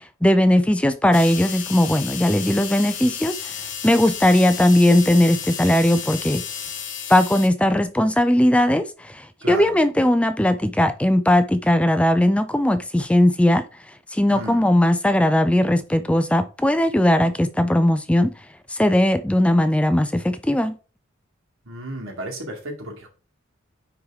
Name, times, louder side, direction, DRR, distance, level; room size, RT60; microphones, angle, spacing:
voice 1, 0.0-3.5 3.8-6.4 7.1-13.6 14.1-18.3 18.7-20.8, left 1 dB, 5° left, 0.4 m, -18 dB
sound 1, 1.1-7.5, left 8 dB, 60° left, 1.4 m, -32 dB
voice 2, 9.4-9.7 14.3-14.7 21.6-23.1, right 1 dB, 85° right, 2.3 m, -33 dB
9.5 x 3.4 x 3.6 m
head